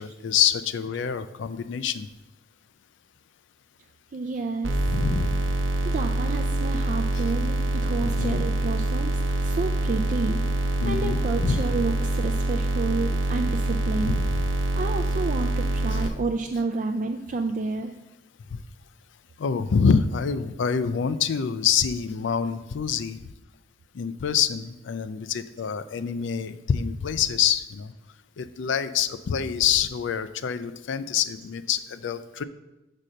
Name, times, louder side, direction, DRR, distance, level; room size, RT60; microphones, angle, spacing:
voice 1, 0.0-2.1 4.9-5.4 7.1-7.2 8.0-8.4 10.8-11.6 14.0-14.4 15.9-16.0 18.5-18.6 19.4-23.2 23.9-27.9 28.4-32.4, left 7 dB, 70° left, 12 dB, 0.4 m, -26 dB
voice 2, 4.1-4.8 5.8-14.1 14.8-17.9, right 3 dB, 45° right, 4 dB, 0.4 m, -30 dB
sound 1, 4.6-16.1, right 2 dB, 80° right, 0.8 m, -25 dB
6.4 x 4.2 x 6.2 m, 1.0 s
head